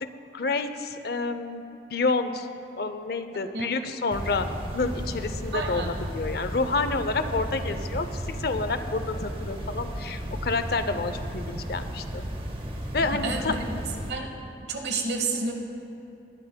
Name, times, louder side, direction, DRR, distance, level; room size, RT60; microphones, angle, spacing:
voice 1, 0.0-1.6 1.9-2.5 2.8-12.2 12.9-13.5, left 3 dB, 60° left, 10 dB, 0.6 m, -29 dB
sound 1, 4.1-14.1, equal, 30° right, 0.9 m, -34 dB
voice 2, 5.5-5.9 13.2-13.7 14.1-14.3 14.7-15.5, right 3 dB, 65° right, 2 dB, 1.3 m, -29 dB
20.0 x 12.0 x 2.2 m, 2.9 s
head